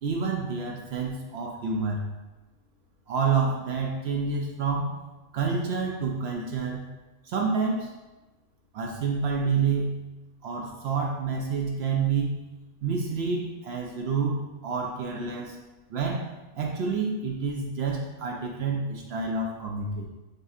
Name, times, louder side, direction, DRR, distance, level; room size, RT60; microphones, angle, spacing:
voice 1, 0.0-2.1 3.1-5.0 5.3-6.9 7.2-7.9 8.7-10.0 10.4-12.4 12.8-15.6 15.9-16.2 16.5-20.1, right 5 dB, 65° right, 0 dB, 0.8 m, -28 dB
6.4 x 2.7 x 2.4 m, 1.1 s
omnidirectional pair, 1.2 m